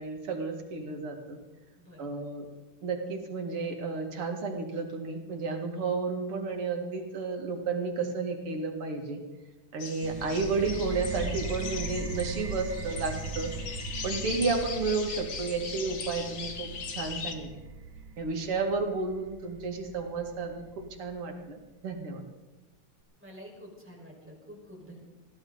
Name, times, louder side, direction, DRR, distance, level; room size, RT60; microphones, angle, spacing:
voice 1, 0.0-1.4 2.0-2.5 2.8-9.2 9.7-13.5 14.0-17.5 18.2-21.6 21.8-22.2, right 4 dB, 85° right, 3 dB, 3.1 m, -32 dB
voice 2, 1.8-2.2 23.2-25.0, equal, 5° right, -3 dB, 5.0 m, -48 dB
sound 1, 9.8-17.3, left 6 dB, 60° left, 2.0 m, -40 dB
sound 2, 10.0-21.4, right 4 dB, 65° right, 1.9 m, -39 dB
21.0 x 16.0 x 4.0 m, 1.1 s
omnidirectional pair, 2.4 m